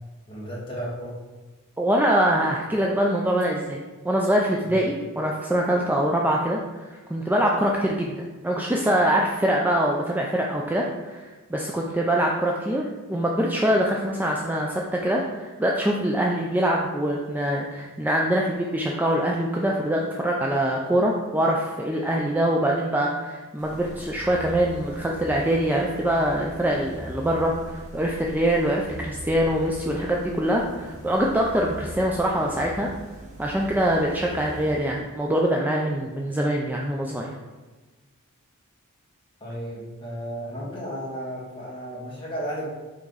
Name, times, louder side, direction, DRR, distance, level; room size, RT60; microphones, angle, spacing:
voice 1, 0.3-1.2 4.6-4.8 39.4-42.6, equal, 25° left, -6 dB, 1.8 m, -34 dB
voice 2, 1.8-11.2 11.5-32.9 33.4-37.3, right 1 dB, 10° right, -1 dB, 0.4 m, -24 dB
sound 1, 23.6-35.5, equal, 30° right, 1.2 m, -41 dB
6.0 x 4.3 x 3.9 m, 1.2 s
head